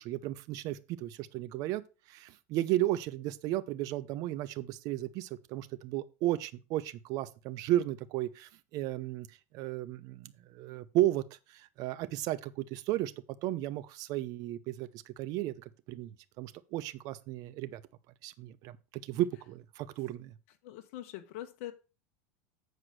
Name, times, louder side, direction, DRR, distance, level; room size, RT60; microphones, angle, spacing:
voice 1, 0.0-1.8 2.1-9.3 9.5-11.2 11.5-13.1 13.4-17.8 18.2-20.3, right 14 dB, 55° right, 0.8 m, -34 dB
voice 2, 20.6-21.7, left 13 dB, 65° left, 1.0 m, -43 dB
8.0 x 4.8 x 6.0 m
supercardioid pair, 120°, 8 cm